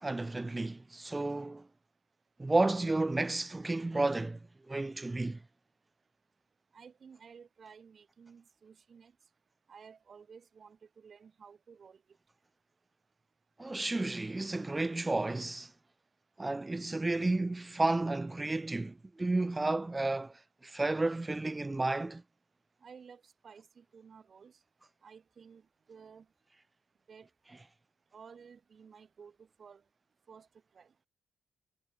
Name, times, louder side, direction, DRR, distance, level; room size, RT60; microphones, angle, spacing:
voice 1, 0.0-1.7 2.4-4.4 4.7-5.4 13.6-15.7 16.4-20.3 20.6-22.2, right 2 dB, 20° right, 0.4 m, -32 dB
voice 2, 6.7-9.2 9.7-12.0 22.8-24.6 25.0-26.3 27.1-27.3 28.1-29.8 30.3-30.5 30.7-30.9, right 6 dB, 50° right, 4.3 m, -54 dB
supercardioid pair, 65°, 0 cm